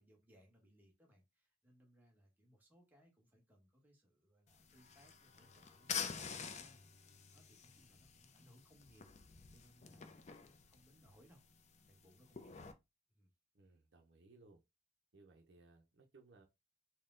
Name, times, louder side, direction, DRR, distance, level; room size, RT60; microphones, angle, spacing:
voice 1, 0.0-6.8 7.3-11.6 11.9-12.7 13.1-13.3, equal, 10° right, 1.2 m, -68 dB
sound 1, 4.5-12.7, left 7 dB, 35° left, 0.5 m, -48 dB
Bowed string instrument, 4.7-9.1, left 1 dB, 55° left, 1.1 m, -70 dB
voice 2, 13.5-14.6 15.1-16.4, right 3 dB, 65° right, 0.7 m, -64 dB
4.2 x 2.2 x 3.7 m
head